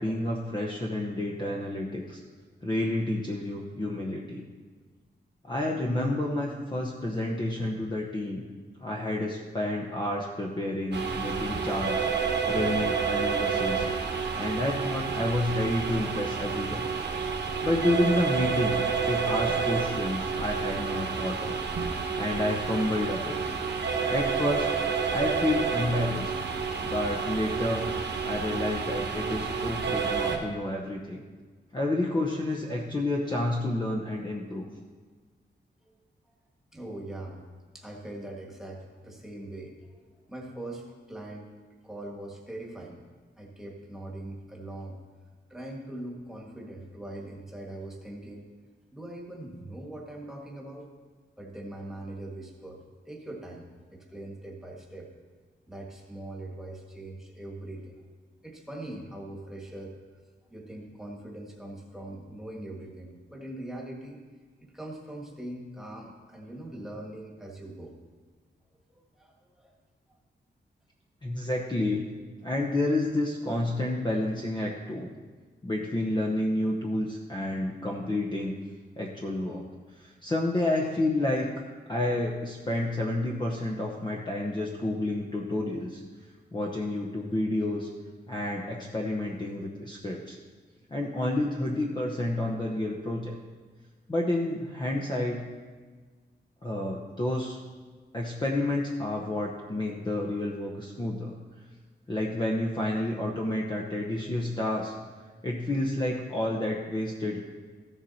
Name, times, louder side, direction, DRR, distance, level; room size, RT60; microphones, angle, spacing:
voice 1, 0.0-2.2 2.6-4.4 5.4-8.4 8.8-12.1 12.5-13.9 14.2-16.9 17.6-21.6 22.2-23.4 24.1-24.7 25.1-26.3 26.8-27.8 28.2-31.2 31.7-34.7 71.2-72.0 72.4-75.1 75.6-78.5 79.0-79.6 79.9-86.0 86.5-87.9 88.3-90.4 90.9-93.3 94.1-95.4 96.6-97.6 98.1-101.3 102.1-104.9 105.4-107.4, left 1 dB, 25° left, -1 dB, 0.9 m, -30 dB
sound 1, 10.9-30.4, right 5 dB, 70° right, 1.3 m, -29 dB
voice 2, 36.7-37.4 37.7-40.0 40.3-41.5 41.8-43.0 43.4-45.0 45.5-48.5 48.9-50.9 51.4-55.1 55.7-58.0 58.4-59.9 60.5-64.2 64.6-68.0 68.9-69.8, right 1 dB, ahead, -2 dB, 1.7 m, -41 dB
14.5 x 7.1 x 4.2 m, 1.5 s
wide cardioid pair, 165°, 19 cm